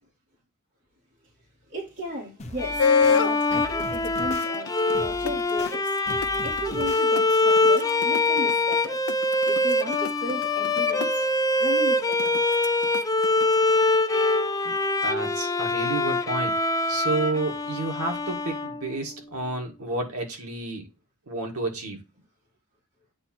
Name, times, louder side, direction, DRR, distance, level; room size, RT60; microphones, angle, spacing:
voice 1, 1.7-4.7 5.0-5.9 6.4-9.0 9.5-11.1 11.6-12.4, equal, 55° right, 2.1 m, -35 dB
sound 1, 2.4-3.2 3.5-4.5 4.9-5.7 6.1-7.0, left 1 dB, 30° left, 0.9 m, -40 dB
Bowed string instrument, 2.6-19.1, left 2 dB, 15° left, 0.5 m, -24 dB
sound 2, 2.8-3.4 3.8-11.1 12.1-13.5, left 6 dB, 80° left, 0.5 m, -26 dB
voice 2, 15.0-16.5 16.9-20.9 21.3-22.0, right 2 dB, 80° right, 1.9 m, -30 dB
8.7 x 2.9 x 4.3 m
head